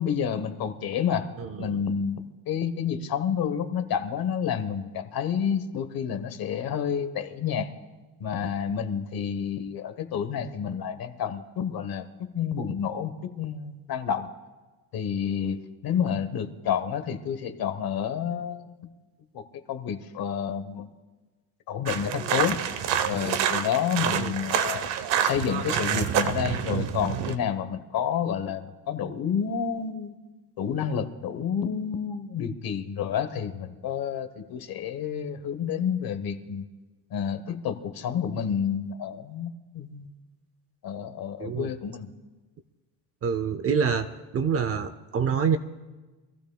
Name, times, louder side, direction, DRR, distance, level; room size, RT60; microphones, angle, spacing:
voice 1, 0.0-1.3 1.6-7.7 8.2-12.0 12.3-14.3 14.9-18.9 19.3-19.4 19.7-20.9 21.7-22.6 23.1-24.9 25.2-30.1 30.6-36.6 37.1-40.1 40.8-42.1, left 8 dB, 50° left, 10 dB, 1.2 m, -29 dB
voice 2, 1.4-1.8 24.2-24.3 41.4-41.7 43.2-44.0 44.3-45.6, right 6 dB, 35° right, 12 dB, 0.5 m, -26 dB
sound 1, 21.9-27.3, right 9 dB, 70° right, 1.0 m, -27 dB
25.5 x 15.0 x 2.3 m, 1.3 s
cardioid pair, 160°, 45 cm